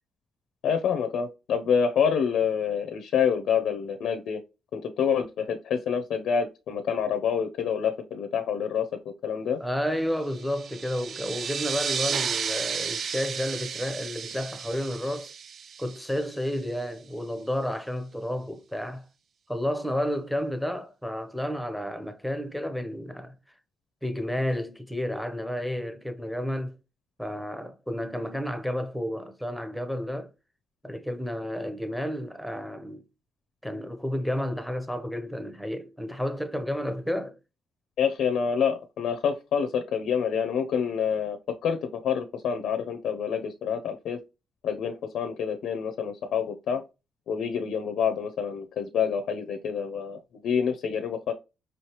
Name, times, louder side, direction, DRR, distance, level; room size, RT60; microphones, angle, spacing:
voice 1, 0.6-4.4 4.7-8.9 9.2-9.6 38.0-41.4 41.6-44.2 44.6-46.8 47.3-51.3, left 7 dB, 80° left, 0.5 m, -27 dB
voice 2, 9.6-15.3 15.8-19.0 19.5-23.3 24.0-26.8 27.2-30.3 30.8-33.0 33.6-37.4, equal, ahead, 0.5 m, -31 dB
sound 1, 10.3-16.5, right 7 dB, 50° right, 0.3 m, -33 dB
5.1 x 3.1 x 2.9 m
cardioid pair, 150°, 0 cm